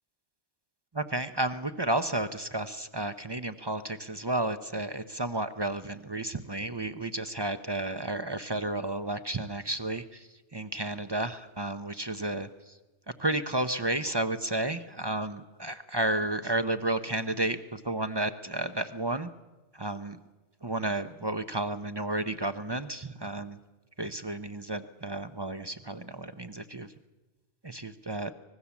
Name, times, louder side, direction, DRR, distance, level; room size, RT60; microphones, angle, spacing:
voice 1, 0.9-12.5 13.2-19.3 19.7-20.2 20.6-23.6 24.0-26.9 27.6-28.3, right 2 dB, 25° right, 10 dB, 0.6 m, -32 dB
25.0 x 19.5 x 7.2 m, 1.1 s
omnidirectional pair, 1.2 m